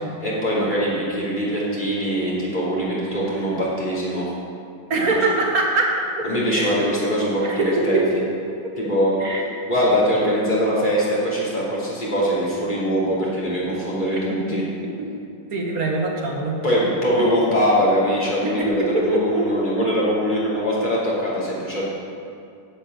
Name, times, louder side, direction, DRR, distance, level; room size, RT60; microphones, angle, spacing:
voice 1, 0.2-4.3 4.9-5.0 6.2-8.0 8.8-9.2 9.7-14.6 16.6-21.8, equal, 25° left, -8 dB, 3.0 m, -22 dB
voice 2, 4.9-6.3 6.5-6.8 7.4-8.0 9.2-9.4 14.5-14.6 15.0-15.1 15.5-16.6 18.4-18.5 18.9-19.5, right 2 dB, 55° right, -1 dB, 1.8 m, -23 dB
11.0 x 5.5 x 8.6 m, 2.5 s
omnidirectional pair, 2.0 m